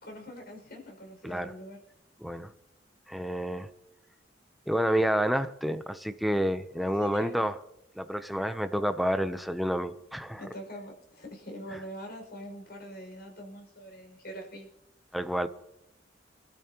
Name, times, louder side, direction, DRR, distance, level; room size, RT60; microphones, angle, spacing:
voice 1, 0.0-1.8 6.9-7.4 10.4-14.7, equal, 55° left, 5.9 m, -43 dB
voice 2, 2.2-2.5 3.1-3.7 4.7-7.6 8.0-10.4 15.1-15.5, equal, ahead, 0.7 m, -29 dB
27.0 x 12.5 x 3.0 m
head